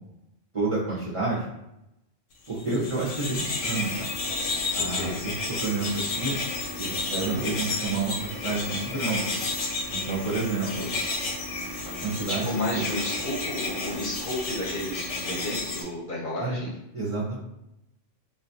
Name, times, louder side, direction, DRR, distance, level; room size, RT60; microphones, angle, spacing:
voice 1, 0.5-1.5 2.5-4.1 4.7-5.1 5.6-6.4 6.8-9.3 9.9-10.9 11.8-12.4 12.7-12.8 16.4-16.6 16.9-17.4, right 3 dB, 40° right, -5 dB, 0.5 m, -29 dB
sound 1, 2.6-15.8, left 3 dB, 90° left, 1.1 m, -31 dB
voice 2, 2.6-3.0 4.8-5.2 7.2-7.5 12.3-16.7, left 1 dB, 50° left, -3 dB, 0.7 m, -32 dB
3.7 x 2.3 x 2.7 m, 0.88 s
omnidirectional pair, 1.3 m